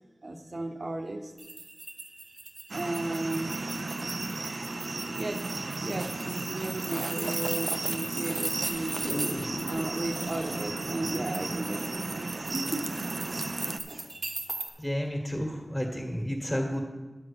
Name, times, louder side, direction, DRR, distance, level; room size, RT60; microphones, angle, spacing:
voice 1, 0.2-1.3 2.7-3.5 5.1-5.4 5.8-9.0 9.7-12.9, right 2 dB, 50° right, 5 dB, 1.0 m, -35 dB
sound 1, 1.4-14.7, right 3 dB, 85° right, 1.3 m, -38 dB
sound 2, 2.7-13.8, right 2 dB, 70° right, 0.5 m, -35 dB
sound 3, 9.0-13.3 13.8-13.9, left 1 dB, 45° left, 1.2 m, -39 dB
voice 2, 14.8-16.8, equal, 10° left, 1 dB, 1.7 m, -31 dB
10.0 x 6.1 x 6.8 m, 1.2 s
wide cardioid pair, 75°, 0 cm